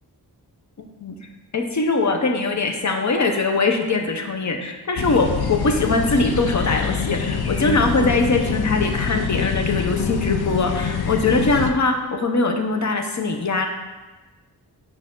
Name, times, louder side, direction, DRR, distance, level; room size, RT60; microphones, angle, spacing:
voice 1, 0.8-1.1 1.5-13.7, left 3 dB, 45° left, 4 dB, 0.9 m, -22 dB
sound 1, 5.0-11.7, left 6 dB, 75° left, 0.7 m, -25 dB
8.6 x 5.7 x 3.8 m, 1.2 s
wide cardioid pair, 115°, 38 cm